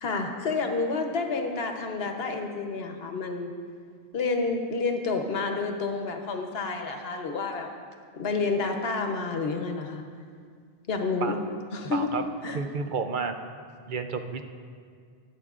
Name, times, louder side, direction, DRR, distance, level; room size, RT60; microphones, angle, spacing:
voice 1, 0.0-3.5 4.1-7.7 8.1-10.0 10.9-11.4 11.7-12.1 12.4-12.6, left 4 dB, 75° left, 4 dB, 1.1 m, -29 dB
voice 2, 11.9-12.2 12.5-13.3 13.9-14.4, right 5 dB, 60° right, 6 dB, 0.7 m, -30 dB
20.5 x 7.7 x 2.4 m, 2.1 s
omnidirectional pair, 1.0 m